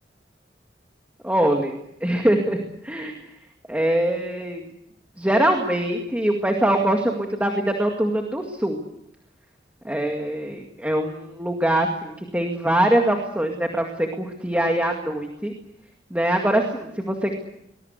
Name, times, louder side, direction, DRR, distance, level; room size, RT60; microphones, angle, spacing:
voice 1, 1.2-2.6 2.8-3.2 3.7-4.7 5.2-8.8 9.8-15.5 16.1-17.4, right 1 dB, 10° right, 2 dB, 2.1 m, -23 dB
23.0 x 21.5 x 8.2 m, 0.82 s
head